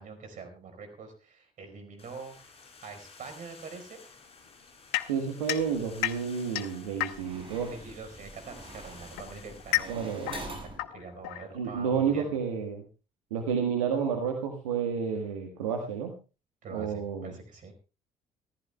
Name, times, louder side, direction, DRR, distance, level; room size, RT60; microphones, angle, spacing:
voice 1, 0.0-2.3 2.8-4.0 7.7-10.1 10.6-12.3 16.6-17.7, right 4 dB, 50° right, 7 dB, 4.7 m, -44 dB
sound 1, 2.0-10.4, left 4 dB, 35° left, 4.6 m, -53 dB
sound 2, 4.9-7.5 8.6-11.9, left 18 dB, 65° left, 1.0 m, -34 dB
voice 2, 5.1-7.7 9.9-10.4 11.5-12.8 13.3-16.1 16.7-17.3, right 7 dB, 75° right, 4 dB, 1.5 m, -30 dB
sound 3, 5.7-6.2 6.8-10.8, right 2 dB, 30° right, 7.6 m, -45 dB
25.0 x 14.5 x 2.3 m, 0.33 s
figure-of-eight pair, 55°, 18 cm